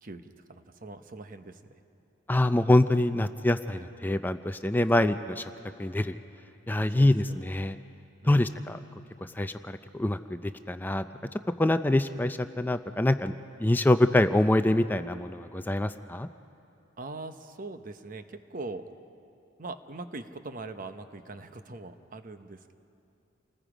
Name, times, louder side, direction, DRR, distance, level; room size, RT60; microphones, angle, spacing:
voice 1, 0.0-1.6 3.7-3.9 5.0-5.1 6.9-7.4 8.2-8.5 17.0-18.8 19.6-22.7, right 3 dB, 45° right, 9 dB, 0.9 m, -41 dB
voice 2, 2.3-5.1 5.8-6.2 6.7-7.8 8.2-8.8 9.4-11.0 11.6-13.3 13.6-16.3, left 1 dB, 10° left, 10 dB, 0.4 m, -25 dB
29.0 x 19.5 x 5.0 m, 2.6 s
head